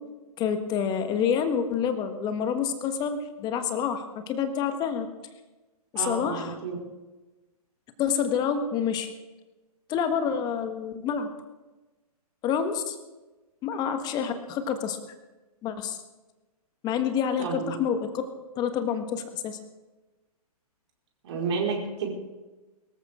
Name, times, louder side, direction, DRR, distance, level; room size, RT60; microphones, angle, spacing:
voice 1, 0.4-5.1 5.9-6.5 8.0-9.1 9.9-11.3 12.4-13.0 13.6-15.0 15.6-16.0 16.8-18.1 18.6-19.6, left 7 dB, 20° left, 8 dB, 1.5 m, -28 dB
voice 2, 5.9-6.8 17.4-17.7 21.2-22.1, right 5 dB, 45° right, -2 dB, 4.9 m, -30 dB
22.5 x 14.0 x 3.7 m, 1.1 s
figure-of-eight pair, 125°, 20 cm